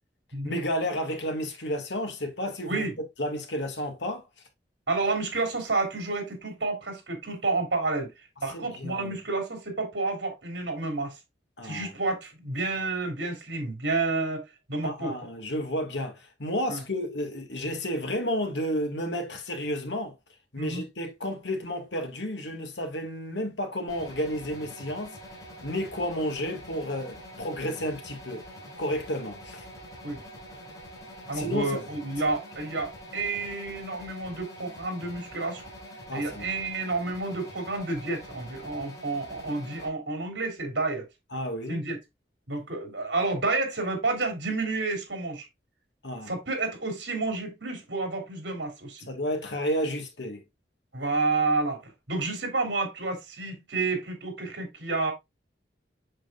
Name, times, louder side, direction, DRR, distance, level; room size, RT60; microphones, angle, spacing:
voice 1, 0.4-2.8 3.2-4.2 8.5-9.2 11.6-11.9 14.8-20.1 20.5-25.2 25.6-28.4 28.8-29.7 31.3-31.9 36.1-36.5 41.3-41.8 46.0-46.3 49.1-50.4, equal, 80° left, 2.0 m, -31 dB
voice 2, 4.9-8.1 8.4-11.2 11.6-15.1 16.7-16.8 20.6-20.8 30.0-30.2 31.3-35.7 36.1-41.1 41.7-42.0 42.5-45.5 46.3-49.1 50.9-55.1, right 3 dB, 80° right, 3.3 m, -30 dB
sound 1, 23.9-39.9, equal, 20° left, 3.6 m, -45 dB
7.7 x 6.5 x 2.4 m
head